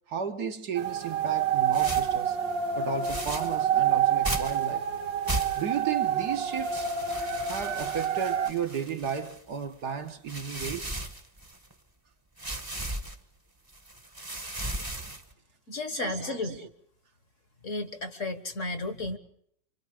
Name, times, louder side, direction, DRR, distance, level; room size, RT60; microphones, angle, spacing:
voice 1, 0.1-2.4 2.8-4.9 5.6-6.9 7.5-11.0 15.9-16.7, right 6 dB, 65° right, 1.8 m, -34 dB
sound 1, 0.8-8.5, right 8 dB, 80° right, 1.8 m, -28 dB
sound 2, 1.7-2.2 3.0-3.6 4.2-4.7 5.2-5.8 6.5-9.5 10.1-11.7 12.4-13.1 13.7-15.3, right 1 dB, 15° right, 1.1 m, -36 dB
voice 2, 15.7-16.7 17.6-19.2, left 2 dB, 45° left, 1.7 m, -33 dB
28.5 x 25.5 x 5.0 m
omnidirectional pair, 1.9 m